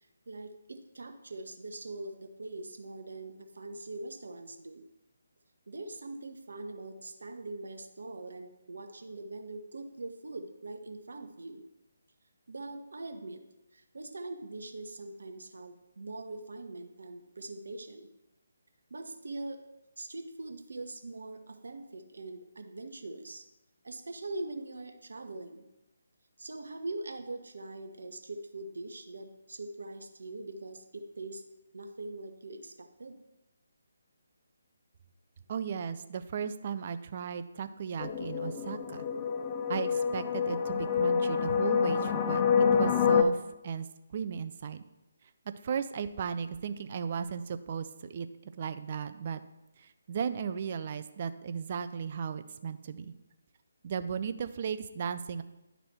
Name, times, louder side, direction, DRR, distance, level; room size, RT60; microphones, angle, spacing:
voice 1, 0.3-4.8 5.7-11.6 12.5-13.4 13.7-18.1 18.9-19.6 20.0-23.5 23.8-25.6 26.4-31.4 31.7-33.2, right 2 dB, 65° right, 6 dB, 0.9 m, -42 dB
voice 2, 35.5-39.1 39.7-43.4 43.6-43.9 44.1-44.8 45.6-48.3 48.6-49.4 50.1-53.1 53.8-55.4, right 7 dB, 40° right, 11 dB, 0.5 m, -36 dB
sound 1, 38.0-43.2, left 6 dB, 25° left, 0.6 m, -27 dB
10.5 x 4.1 x 4.3 m, 0.92 s
figure-of-eight pair, 145°, 0 cm